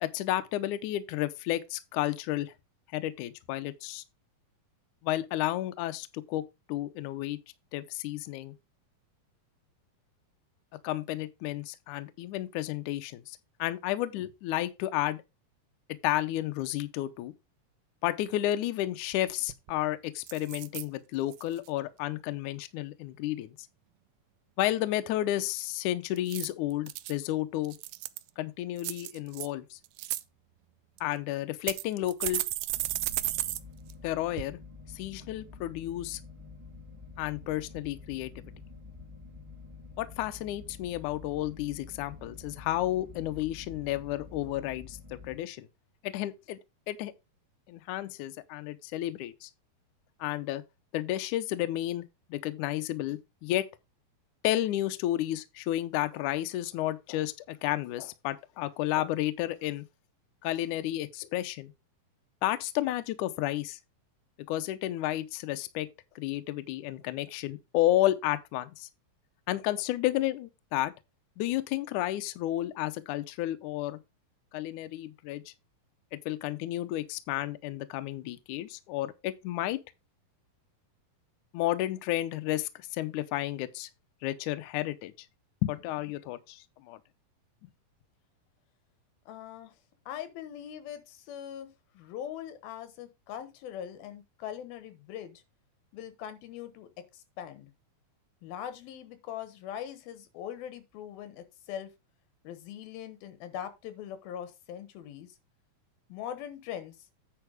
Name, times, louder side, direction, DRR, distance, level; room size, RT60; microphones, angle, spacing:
voice 1, 0.0-2.5 2.9-4.0 5.0-7.4 7.7-8.5 10.7-15.2 16.0-17.3 18.0-23.6 24.6-27.8 28.4-29.8 31.0-32.4 34.0-34.6 35.0-36.2 37.2-38.5 40.0-45.7 46.0-46.6 46.9-47.1 47.7-49.5 50.2-50.6 50.9-53.7 54.4-59.9 60.4-61.7 62.4-63.8 64.5-65.9 66.2-68.9 69.5-70.9 71.4-74.0 74.5-75.5 76.1-79.8 81.5-83.9 84.2-85.1 85.6-87.0, left 14 dB, 75° left, 2.0 m, -32 dB
sound 1, 19.1-19.2 19.5-19.8 20.3-20.9 21.3-21.7 26.2-27.1 27.6-28.3 28.8-29.5 29.8-30.2 31.0-31.1 31.7-33.6 33.9-34.0 34.4-34.5, right 17 dB, 80° right, 2.2 m, -34 dB
sound 2, 32.7-45.4, left 4 dB, 35° right, 0.5 m, -48 dB
voice 2, 89.3-89.7 90.1-95.4 95.9-97.7 98.4-101.9 102.4-105.4 106.1-107.0, left 10 dB, 90° left, 3.1 m, -41 dB
9.5 x 4.5 x 5.0 m
omnidirectional pair, 4.1 m